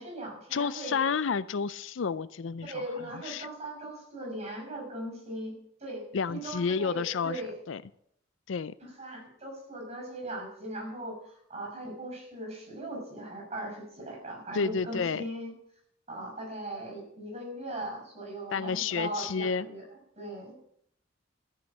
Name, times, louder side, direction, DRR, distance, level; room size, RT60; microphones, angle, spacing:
voice 1, 0.0-1.0 2.6-7.5 8.8-15.5 16.1-19.8 20.1-20.5, right 1 dB, 40° right, 2 dB, 6.2 m, -39 dB
voice 2, 0.5-2.7 3.3-3.5 6.1-7.4 7.7-7.8 8.5-8.7 14.5-15.2 18.5-19.7, left 5 dB, 75° left, 17 dB, 0.5 m, -30 dB
13.5 x 6.3 x 8.7 m, 0.70 s
head